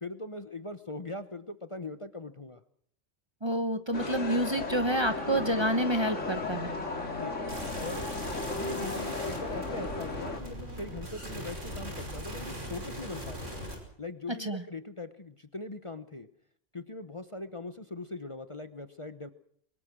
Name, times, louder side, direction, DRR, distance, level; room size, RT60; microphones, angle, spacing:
voice 1, 0.0-2.6 7.2-7.5 7.8-8.1 8.5-13.6 14.0-16.3 16.7-19.3, left 2 dB, 30° left, 10 dB, 1.0 m, -41 dB
voice 2, 3.4-6.7 14.3-14.6, right 1 dB, 25° right, 9 dB, 1.0 m, -28 dB
sound 1, 3.9-10.4, left 3 dB, 90° left, 2.9 m, -35 dB
sound 2, 7.5-13.7, equal, 90° right, 5.7 m, -40 dB
23.5 x 20.0 x 6.2 m, 0.65 s
omnidirectional pair, 1.2 m